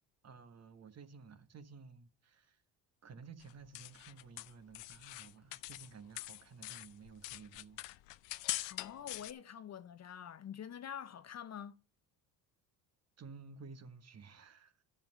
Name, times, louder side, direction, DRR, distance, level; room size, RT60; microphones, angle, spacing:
voice 1, 0.2-2.6 3.0-7.8 13.2-14.8, right 5 dB, 35° right, 1.1 m, -54 dB
sound 1, 3.4-5.9 6.2-9.3, left 19 dB, 75° left, 0.6 m, -43 dB
voice 2, 8.6-11.8, left 9 dB, 40° left, 0.6 m, -46 dB
10.5 x 5.5 x 5.4 m
supercardioid pair, 85°, 44 cm